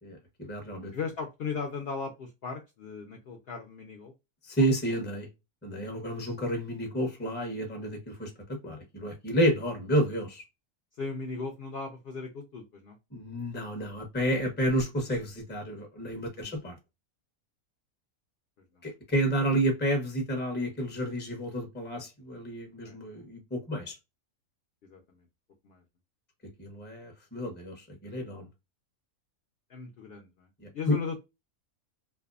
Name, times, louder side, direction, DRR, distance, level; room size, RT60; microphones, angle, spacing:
voice 1, 0.0-0.9 4.4-5.3 5.6-10.4 13.1-16.8 18.8-24.0 26.6-28.5 30.6-31.0, right 1 dB, 10° left, 0.5 m, -30 dB
voice 2, 0.9-4.1 10.9-13.0 16.3-16.5 18.7-18.8 22.8-23.0 24.8-25.3 25.6-25.8 29.7-30.5 30.7-31.2, left 5 dB, 70° left, 0.5 m, -37 dB
2.6 x 2.1 x 2.3 m
omnidirectional pair, 1.5 m